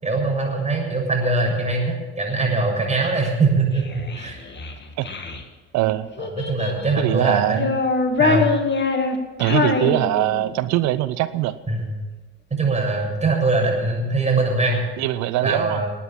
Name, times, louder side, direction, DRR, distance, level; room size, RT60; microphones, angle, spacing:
voice 1, 0.0-4.4 6.2-7.6 8.2-8.5 11.7-11.9 12.5-14.8 15.4-15.9, right 3 dB, 20° right, 0 dB, 7.1 m, -22 dB
Child speech kid speaking, 3.7-5.4 6.2-7.0 7.5-10.6, left 4 dB, 35° left, 2.1 m, -24 dB
voice 2, 5.7-6.1 7.0-7.7 9.4-11.5 15.0-15.8, right 15 dB, 55° right, 14 dB, 0.8 m, -22 dB
20.5 x 9.5 x 7.4 m, 1.2 s
hypercardioid pair, 60°, 33 cm